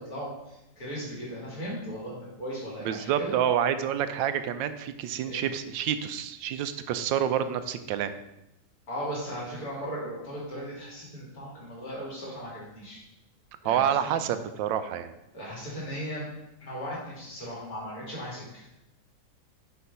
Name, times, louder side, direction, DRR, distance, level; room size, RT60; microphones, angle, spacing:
voice 1, 0.0-3.4 5.2-5.5 8.9-13.0 13.6-14.2 15.3-16.3 16.6-18.7, equal, 50° left, -6 dB, 3.3 m, -37 dB
voice 2, 2.8-8.1 13.6-15.1, right 9 dB, 85° right, 10 dB, 1.3 m, -28 dB
6.6 x 4.6 x 5.5 m, 0.89 s
omnidirectional pair, 2.0 m